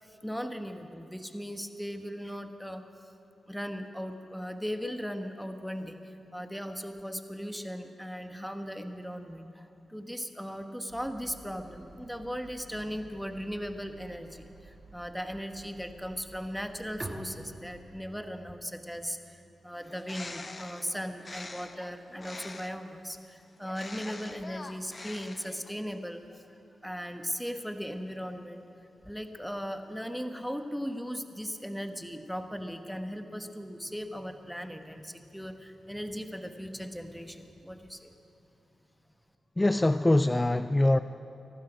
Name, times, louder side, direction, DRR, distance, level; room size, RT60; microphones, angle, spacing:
voice 1, 0.0-2.9 3.5-28.6 29.1-38.1, equal, ahead, 6 dB, 1.1 m, -38 dB
sound 1, 10.9-17.8, right 3 dB, 75° right, 3.2 m, -54 dB
Bowed string instrument, 17.0-20.5, right 1 dB, 25° right, 1.5 m, -46 dB
Bird, 19.8-22.9 23.6-25.8, left 3 dB, 35° left, 0.9 m, -45 dB
voice 2, 39.6-41.0, left 1 dB, 20° left, 12 dB, 0.3 m, -23 dB
23.0 x 12.0 x 5.0 m, 2.9 s
cardioid pair, 65°, 0 cm